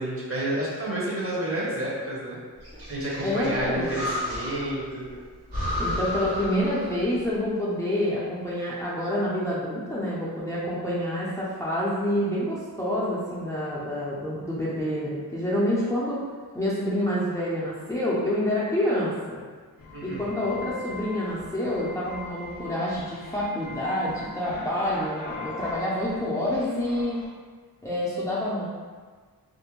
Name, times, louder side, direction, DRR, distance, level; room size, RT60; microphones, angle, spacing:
voice 1, 0.0-2.4 2.9-5.1 19.9-20.3, right 1 dB, 35° right, -7 dB, 0.8 m, -30 dB
Breathing, 2.6-4.8 5.1-5.2 5.5-7.2, left 1 dB, 85° right, 1.0 m, -32 dB
voice 2, 3.2-3.9 5.8-16.2 16.5-19.4 20.0-27.2 27.8-28.7, left 1 dB, 10° left, -8 dB, 0.4 m, -27 dB
sound 1, 19.8-27.3, left 3 dB, 60° left, 0.6 m, -40 dB
2.5 x 2.1 x 2.9 m, 1.5 s
wide cardioid pair, 90°, 39 cm